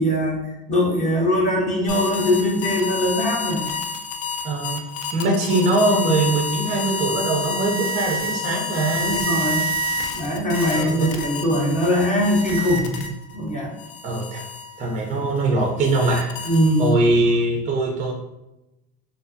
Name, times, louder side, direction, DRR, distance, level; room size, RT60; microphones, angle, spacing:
voice 1, 0.0-3.7 9.0-9.7 10.1-13.1 13.3-13.8 16.4-16.9, equal, 25° left, -2 dB, 0.6 m, -21 dB
sound 1, 1.9-13.4 13.8-17.2, left 2 dB, 75° left, 0.5 m, -29 dB
voice 2, 4.4-4.8 5.1-9.3 10.7-11.1 14.0-14.5 14.8-16.5 16.8-18.1, right 2 dB, 25° right, 0 dB, 0.3 m, -22 dB
2.5 x 2.2 x 2.5 m, 0.95 s
supercardioid pair, 120°, 29 cm